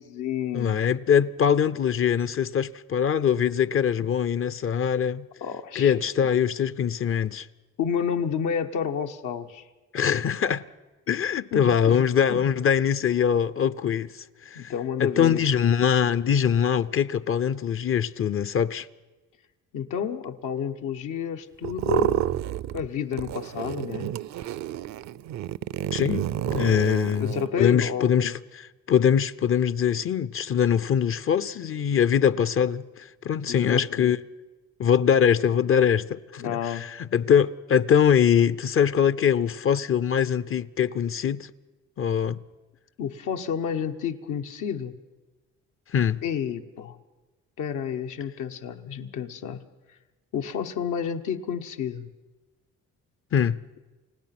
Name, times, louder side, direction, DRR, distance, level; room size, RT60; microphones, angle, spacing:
voice 1, 0.0-0.8 5.4-5.9 7.8-9.6 11.5-12.0 12.3-12.4 14.5-15.4 19.7-22.3 22.7-24.1 27.2-28.3 33.5-34.1 36.4-36.9 43.0-44.9 46.2-47.0 47.6-49.6 50.3-52.1, left 8 dB, 85° left, 1.2 m, -30 dB
voice 2, 0.5-5.3 5.7-7.5 9.9-10.6 11.1-14.7 15.0-18.9 25.9-34.2 34.8-41.5 42.0-42.4 45.9-46.2 53.3-53.6, left 8 dB, 45° left, 0.6 m, -23 dB
sound 1, 21.6-22.9 23.1-27.5, right 12 dB, 65° right, 0.6 m, -29 dB
29.5 x 17.0 x 6.0 m
cardioid pair, 90°, 30 cm